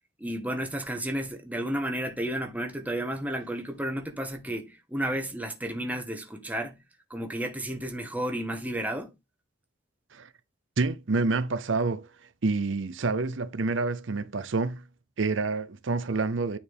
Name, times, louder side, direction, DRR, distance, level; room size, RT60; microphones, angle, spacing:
voice 1, 0.2-6.8 7.1-9.1, right 1 dB, 10° right, 1.4 m, -32 dB
voice 2, 10.8-12.1 12.4-14.8 15.2-16.6, right 3 dB, 90° right, 0.7 m, -28 dB
9.4 x 4.5 x 3.5 m
head